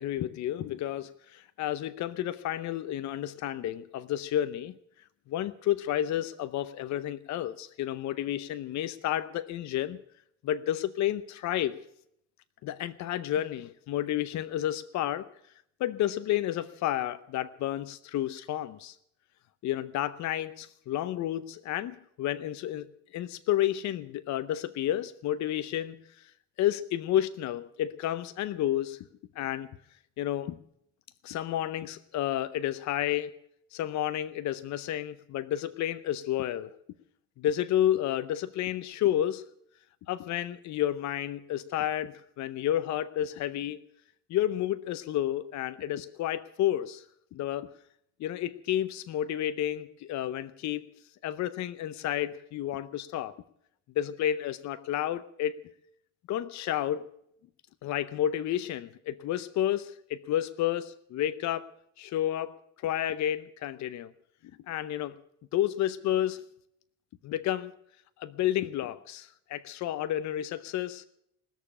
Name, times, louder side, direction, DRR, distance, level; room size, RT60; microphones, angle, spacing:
voice 1, 0.0-4.7 5.3-10.0 10.4-11.8 12.6-15.3 15.8-19.0 19.6-22.9 23.1-26.3 26.6-29.0 29.4-29.7 30.2-30.6 31.2-33.3 33.7-36.8 37.4-39.4 40.1-43.8 44.3-47.0 47.3-47.7 48.2-50.9 51.2-53.3 54.0-55.6 56.3-57.1 57.8-61.7 62.0-64.1 64.7-65.2 65.5-66.4 67.2-67.7 68.2-71.1, left 12 dB, 65° left, 13 dB, 0.7 m, -31 dB
19.5 x 7.0 x 9.9 m, 0.72 s
cardioid pair, 110°, 30 cm